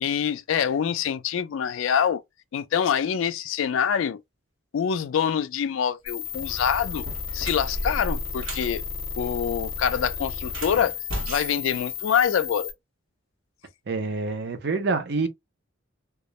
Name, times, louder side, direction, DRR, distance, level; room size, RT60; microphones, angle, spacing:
voice 1, 0.0-2.2 2.5-4.2 4.7-7.1 7.3-8.8 9.2-10.9 11.3-12.7, left 8 dB, 75° left, 0.3 m, -25 dB
sound 1, 6.1-12.7, left 6 dB, 25° left, 0.6 m, -33 dB
sound 2, 6.1-6.4 6.9-8.7 10.4-12.5, right 1 dB, 75° right, 0.9 m, -35 dB
voice 2, 13.9-15.3, right 3 dB, 50° right, 0.5 m, -26 dB
2.3 x 2.0 x 2.8 m
head